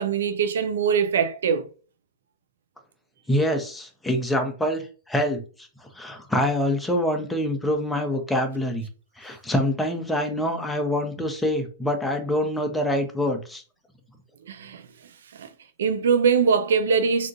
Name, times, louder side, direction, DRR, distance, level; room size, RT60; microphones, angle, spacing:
voice 1, 0.0-1.7 14.5-14.9 15.3-15.5 15.8-17.3, right 6 dB, 75° right, 0.5 m, -22 dB
voice 2, 3.3-5.4 5.9-8.9 9.2-13.6, left 1 dB, 5° left, 0.7 m, -25 dB
3.6 x 2.5 x 2.5 m
hypercardioid pair, 120°, 0 cm